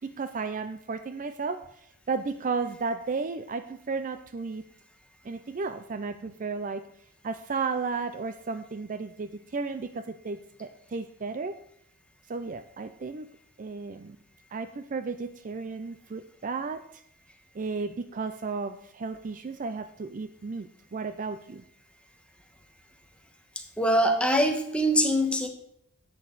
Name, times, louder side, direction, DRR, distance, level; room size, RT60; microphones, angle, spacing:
voice 1, 0.0-1.7 2.1-4.6 5.2-6.8 7.2-11.6 12.3-13.3 13.6-14.2 14.5-17.0 17.5-21.6, right 4 dB, 35° right, 11 dB, 0.4 m, -33 dB
voice 2, 23.5-25.5, equal, 5° left, 4 dB, 1.2 m, -24 dB
11.0 x 8.3 x 4.0 m, 0.75 s
head